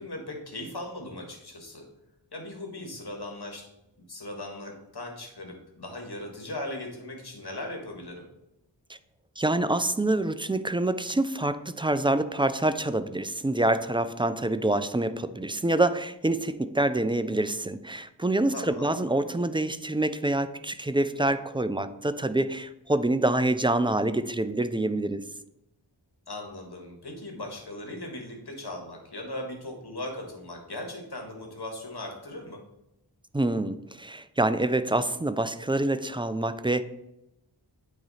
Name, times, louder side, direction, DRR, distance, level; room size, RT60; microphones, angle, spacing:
voice 1, 0.0-1.8 2.3-3.7 4.1-8.2 18.5-18.9 26.3-32.6, left 1 dB, 60° left, 1.6 m, -38 dB
voice 2, 9.4-25.3 33.3-36.8, right 2 dB, 15° right, 0.3 m, -26 dB
9.1 x 3.1 x 4.1 m
wide cardioid pair, 40°, 45 cm